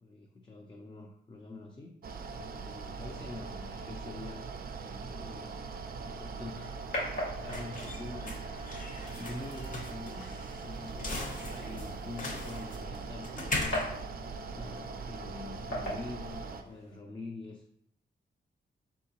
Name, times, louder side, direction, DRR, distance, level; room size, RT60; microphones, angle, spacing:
voice 1, 0.0-4.5 4.8-5.6 6.0-6.8 7.2-8.5 8.8-17.8, left 2 dB, 25° left, 1 dB, 0.5 m, -46 dB
Mechanical fan, 2.0-16.6, right 4 dB, 50° right, 0.4 m, -41 dB
sound 1, 6.0-17.0, left 1 dB, 80° left, 1.8 m, -43 dB
sound 2, 6.1-15.0, left 2 dB, 45° left, 0.9 m, -40 dB
4.5 x 3.6 x 2.9 m, 0.71 s
wide cardioid pair, 125°, 20 cm